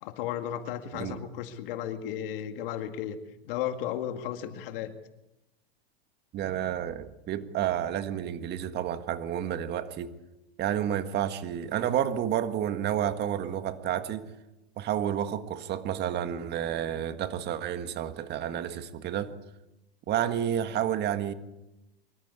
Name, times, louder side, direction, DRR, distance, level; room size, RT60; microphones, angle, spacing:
voice 1, 0.0-3.2 3.4-4.9, left 10 dB, 60° left, 2.1 m, -34 dB
voice 2, 6.3-10.2 10.6-14.3 14.8-19.4 20.1-21.3, right 10 dB, 35° right, 1.7 m, -30 dB
24.0 x 13.5 x 8.3 m
supercardioid pair, 125°, 30 cm